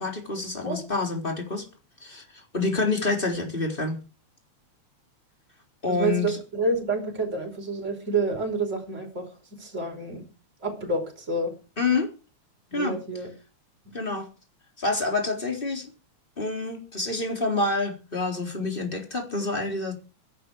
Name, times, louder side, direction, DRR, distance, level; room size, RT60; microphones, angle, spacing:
voice 1, 0.0-1.7 2.0-4.0 5.8-6.4 11.8-12.1 12.7-13.0 13.9-14.3 14.8-15.9 16.4-19.9, left 3 dB, 15° left, 3.9 m, -27 dB
voice 2, 5.9-9.3 9.6-10.2 10.6-11.5 12.7-13.3, right 2 dB, 20° right, 5.6 m, -28 dB
23.0 x 11.0 x 4.8 m
omnidirectional pair, 3.3 m